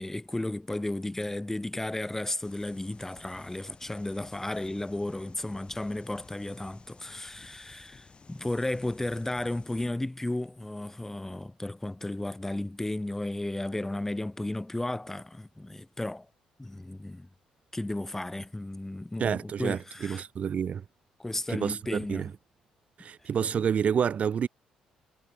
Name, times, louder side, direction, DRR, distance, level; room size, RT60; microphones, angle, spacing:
voice 1, 0.0-16.3 16.6-17.3 17.7-20.2 21.2-22.3, left 1 dB, 15° left, 1.4 m, -34 dB
sound 1, 2.4-9.9, left 4 dB, 40° left, 5.1 m, -54 dB
voice 2, 19.2-20.8 21.5-22.3 23.0-24.5, right 7 dB, 55° right, 1.0 m, -29 dB
hypercardioid pair, 50°, 3 cm